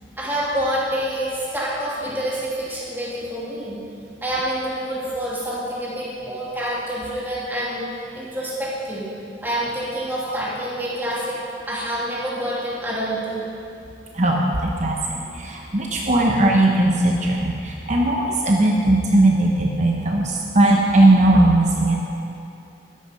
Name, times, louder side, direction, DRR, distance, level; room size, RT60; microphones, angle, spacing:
voice 1, 0.2-3.8 4.2-7.8 8.1-9.1 9.4-11.4 11.7-13.4, right 1 dB, 10° right, -7 dB, 3.0 m, -27 dB
voice 2, 14.1-15.0 15.3-22.0, right 1 dB, 40° right, -1 dB, 1.0 m, -18 dB
13.5 x 10.0 x 5.3 m, 2.6 s
head